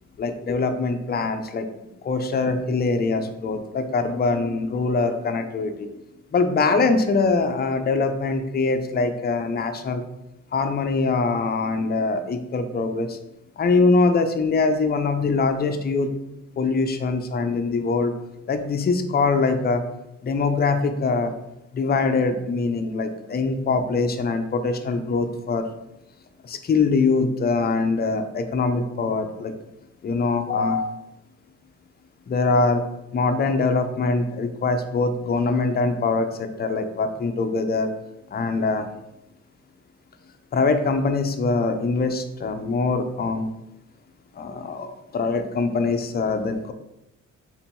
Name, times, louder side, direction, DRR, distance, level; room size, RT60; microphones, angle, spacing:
voice 1, 0.2-1.7 2.0-5.9 6.3-10.0 10.5-13.2 13.6-16.1 16.6-18.1 18.5-19.8 20.2-21.3 21.7-25.6 26.4-29.5 30.0-30.9 32.3-32.8 33.1-37.9 38.3-38.9 40.5-43.5 44.4-46.7, left 3 dB, 30° left, 6 dB, 0.5 m, -23 dB
3.7 x 2.9 x 4.5 m, 0.89 s
cardioid pair, 90°, 30 cm